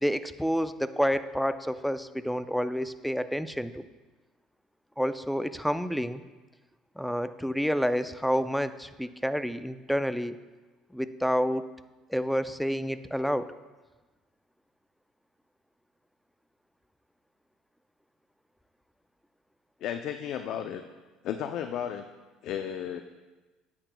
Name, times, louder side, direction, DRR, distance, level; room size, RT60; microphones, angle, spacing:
voice 1, 0.0-3.8 5.0-6.2 7.0-10.4 10.9-11.6 12.1-13.5, equal, ahead, 12 dB, 0.4 m, -29 dB
voice 2, 19.8-20.8 21.2-22.1 22.4-23.0, left 9 dB, 65° left, 6 dB, 0.4 m, -33 dB
9.7 x 8.5 x 2.2 m, 1.2 s
supercardioid pair, 90°, 0 cm